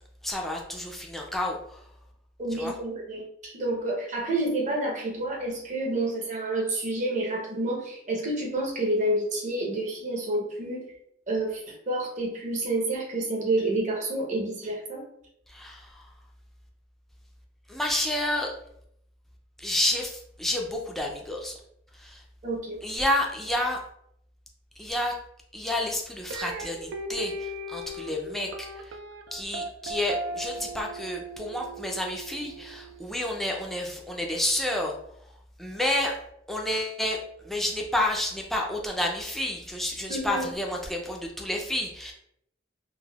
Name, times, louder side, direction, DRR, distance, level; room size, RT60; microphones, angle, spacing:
voice 1, 0.2-1.8 2.5-2.7 15.5-16.1 17.7-18.5 19.6-21.5 22.0-22.2 22.8-23.8 24.8-25.1 25.5-28.9 29.3-35.0 35.6-36.1 36.5-42.1, left 1 dB, ahead, 0 dB, 0.3 m, -30 dB
voice 2, 2.4-10.9 11.3-15.0 22.4-22.8 40.1-40.5, right 2 dB, 40° right, -1 dB, 0.7 m, -29 dB
sound 1, 26.3-33.4, right 1 dB, 80° right, 0.3 m, -38 dB
3.3 x 2.1 x 2.3 m, 0.73 s
head